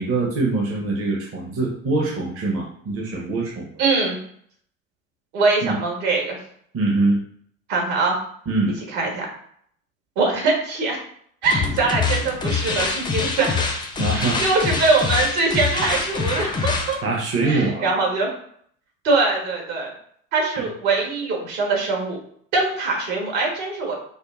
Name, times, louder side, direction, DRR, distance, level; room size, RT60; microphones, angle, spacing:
voice 1, 0.0-3.7 5.6-5.8 6.7-7.2 8.5-8.7 14.0-14.4 17.0-17.9 20.6-20.7, right 3 dB, 30° right, -1 dB, 0.8 m, -23 dB
voice 2, 3.8-4.2 5.3-6.4 7.7-8.2 8.9-9.3 10.2-11.0 11.4-13.6 14.1-17.0 17.4-18.4 19.0-19.9 20.3-22.2 22.5-23.9, right 3 dB, 60° right, 0 dB, 1.5 m, -22 dB
sound 1, 11.4-17.0, left 4 dB, 10° left, 0.5 m, -25 dB
5.1 x 2.1 x 2.4 m, 0.63 s
hypercardioid pair, 80°, 42 cm